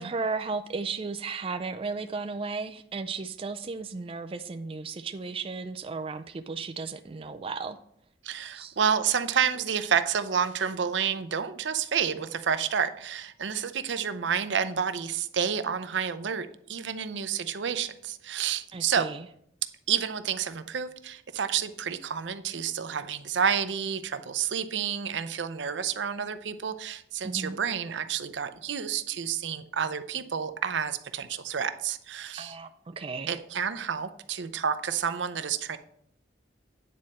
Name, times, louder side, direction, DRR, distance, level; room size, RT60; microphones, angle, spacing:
voice 1, 0.0-7.8 8.5-8.8 18.7-19.3 27.2-27.6 32.4-33.4, right 4 dB, 30° right, 9 dB, 0.4 m, -35 dB
voice 2, 8.2-19.1 19.9-32.6 33.3-35.8, right 7 dB, 75° right, 11 dB, 0.6 m, -29 dB
9.4 x 4.2 x 6.4 m, 0.69 s
head